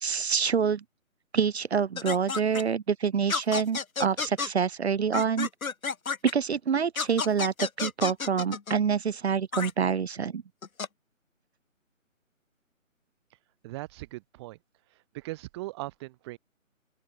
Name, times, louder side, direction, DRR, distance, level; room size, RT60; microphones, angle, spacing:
voice 1, 0.0-0.8 1.3-5.5 6.3-10.4, right 6 dB, 50° right, 0.6 m, -27 dB
sound 1, 2.0-2.6 3.3-4.5 5.1-6.3 6.9-8.8 9.5-9.7 10.6-10.9, left 5 dB, 85° left, 1.6 m, -31 dB
voice 2, 13.6-14.6 14.9-16.4, right 19 dB, 20° right, 4.1 m, -39 dB
open air
hypercardioid pair, 160°, 41 cm